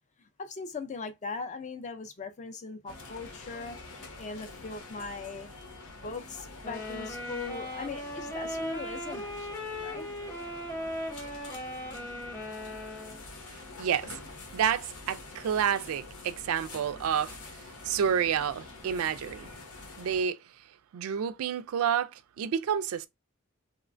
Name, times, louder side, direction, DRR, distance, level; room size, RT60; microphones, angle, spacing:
voice 1, 0.4-3.8 4.2-5.5 6.0-10.1, left 4 dB, 35° left, 0.4 m, -40 dB
sound 1, 2.9-20.2, left 2 dB, 90° left, 0.9 m, -46 dB
sound 2, 6.6-13.2, left 1 dB, 10° left, 0.8 m, -38 dB
voice 2, 13.8-14.2 14.5-17.4 17.8-19.5 20.0-20.4 20.9-23.1, right 8 dB, 80° right, 0.3 m, -29 dB
3.0 x 2.1 x 2.5 m
head